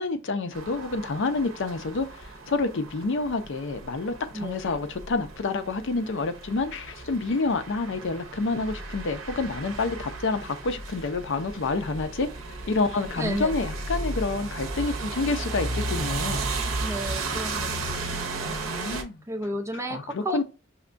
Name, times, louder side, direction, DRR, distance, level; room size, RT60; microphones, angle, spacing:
voice 1, 0.0-12.3 12.7-16.5 18.4-19.2 19.9-20.4, left 3 dB, 65° left, 0.5 m, -28 dB
sound 1, 0.5-19.0, right 3 dB, 80° right, 0.7 m, -34 dB
voice 2, 13.2-13.5 16.8-18.2 19.3-20.4, right 1 dB, 15° right, 0.5 m, -33 dB
5.6 x 2.2 x 2.5 m
head